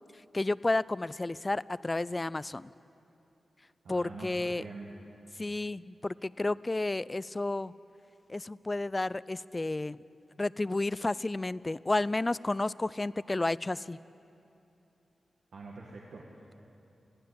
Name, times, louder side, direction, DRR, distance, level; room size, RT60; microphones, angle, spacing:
voice 1, 0.3-2.7 3.9-4.6 5.4-7.7 8.3-10.0 10.4-14.0, left 2 dB, 25° left, 19 dB, 0.4 m, -31 dB
voice 2, 3.8-4.9 15.5-16.6, right 3 dB, 85° right, -3 dB, 1.9 m, -45 dB
19.5 x 15.5 x 8.6 m, 2.8 s
cardioid pair, 70°, 0 cm